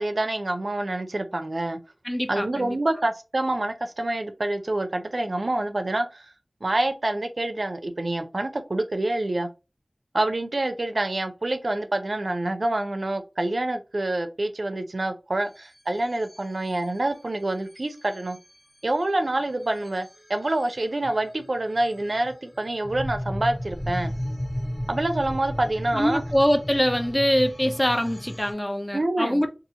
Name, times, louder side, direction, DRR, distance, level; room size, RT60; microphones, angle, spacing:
voice 1, 0.0-1.8 2.3-6.2 6.6-9.5 10.1-18.4 18.8-24.1 24.9-26.2 28.9-29.4, right 2 dB, 75° right, 0.4 m, -27 dB
voice 2, 2.1-2.8 25.9-29.5, equal, 25° left, 0.6 m, -23 dB
sound 1, 15.4-28.5, equal, 75° left, 1.2 m, -36 dB
2.7 x 2.4 x 2.7 m
wide cardioid pair, 45°, 0 cm